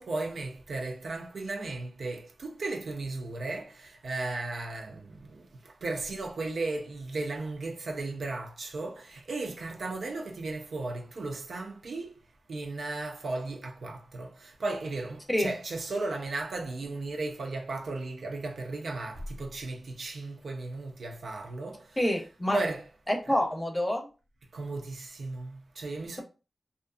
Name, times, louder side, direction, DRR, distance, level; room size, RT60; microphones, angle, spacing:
voice 1, 0.0-12.1 12.5-22.0 22.5-22.8 23.3-23.4 24.5-26.2, right 2 dB, 75° right, 0.5 m, -35 dB
voice 2, 22.0-22.6 23.1-24.1, left 1 dB, 15° left, 0.6 m, -27 dB
2.6 x 2.4 x 2.3 m
wide cardioid pair, 100°, 0 cm